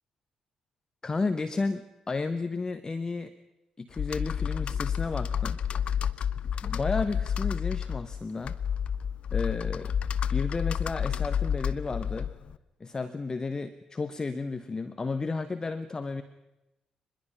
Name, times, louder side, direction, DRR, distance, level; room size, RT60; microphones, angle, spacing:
voice 1, 1.0-3.3 3.8-5.6 6.6-8.6 9.3-9.9 10.3-12.3 12.8-16.2, left 3 dB, 30° left, 10 dB, 1.2 m, -32 dB
Computer keyboard, 3.9-12.5, left 8 dB, 50° left, 0.7 m, -30 dB
25.0 x 21.0 x 5.7 m, 0.97 s
figure-of-eight pair, 40°, 2 cm